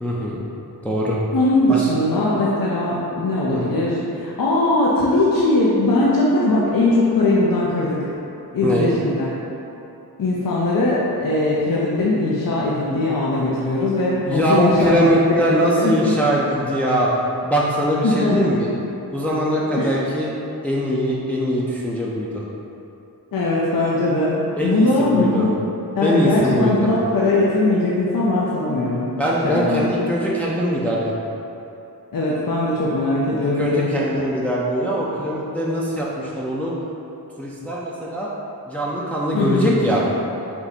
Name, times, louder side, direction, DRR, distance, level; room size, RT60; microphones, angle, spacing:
voice 1, 0.0-0.4 0.8-1.2 1.7-1.9 3.5-3.6 8.6-8.9 14.3-17.1 17.4-18.7 19.1-20.3 20.6-22.4 24.6-25.4 26.0-26.9 29.2-31.1 33.4-36.7 37.4-38.3 38.7-40.0, equal, 5° left, -6 dB, 0.5 m, -21 dB
voice 2, 1.3-8.1 8.5-9.3 10.2-16.1 18.0-18.4 19.8-20.0 23.3-25.5 25.9-29.1 29.4-29.9 32.1-33.9 39.3-39.8, left 2 dB, 60° left, -6 dB, 0.6 m, -20 dB
4.5 x 2.7 x 4.1 m, 2.9 s
wide cardioid pair, 65°, 39 cm